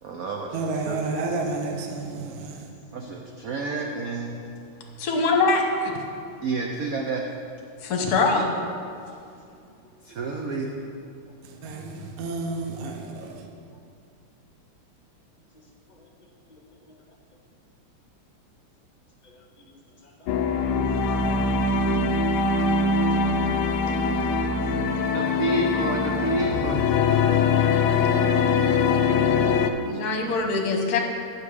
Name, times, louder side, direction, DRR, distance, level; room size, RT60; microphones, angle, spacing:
voice 1, 0.0-1.1 2.9-4.5 6.4-7.2 10.1-10.7 25.1-26.9, right 3 dB, 80° right, 0.7 m, -29 dB
voice 2, 0.5-2.6 11.6-12.9 13.2-13.3, right 3 dB, 55° right, 1.1 m, -30 dB
voice 3, 5.0-6.0 7.8-8.6 29.9-31.0, left 3 dB, 55° left, 1.3 m, -23 dB
sound 1, 20.3-29.7, left 4 dB, 80° left, 0.9 m, -22 dB
voice 4, 21.0-21.3 23.0-23.6 23.9-24.0 24.7-25.1, left 3 dB, 30° left, 0.8 m, -50 dB
9.0 x 7.1 x 4.9 m
omnidirectional pair, 2.4 m